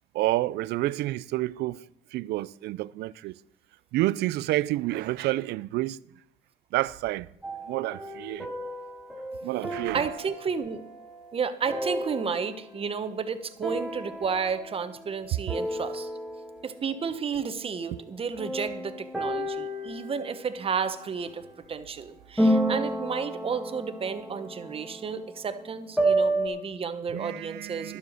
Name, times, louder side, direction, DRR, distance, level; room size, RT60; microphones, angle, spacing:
voice 1, 0.1-1.8 2.1-3.3 3.9-6.0 6.7-7.3 7.7-8.5 9.4-10.1 27.1-28.0, right 17 dB, 75° right, 0.4 m, -29 dB
sound 1, 7.4-12.9 13.6-15.2 15.5-16.8 18.4-21.4 22.4-26.5, right 1 dB, ahead, 1.6 m, -31 dB
voice 2, 9.9-10.8 11.3-16.1 16.6-21.4 21.7-28.0, right 6 dB, 35° right, 1.1 m, -32 dB
11.5 x 7.7 x 6.6 m
cardioid pair, 110°, 17 cm